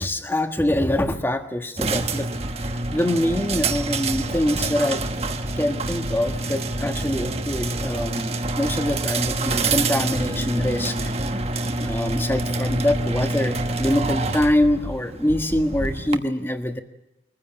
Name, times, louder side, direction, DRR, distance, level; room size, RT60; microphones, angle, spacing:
voice 1, 0.0-2.3 2.9-5.0 5.6-11.1 11.8-16.8, left 1 dB, 10° left, 7 dB, 1.4 m, -24 dB
sound 1, 1.8-16.2, right 2 dB, 35° right, 1.2 m, -27 dB
sound 2, 2.4-3.0 3.3-4.7 5.0-6.4 6.7-8.1 8.4-9.8 10.1-11.5 11.9-13.3 13.6-15.0 15.3-16.0, equal, 60° right, 1.6 m, -33 dB
22.5 x 15.0 x 8.8 m, 0.92 s
head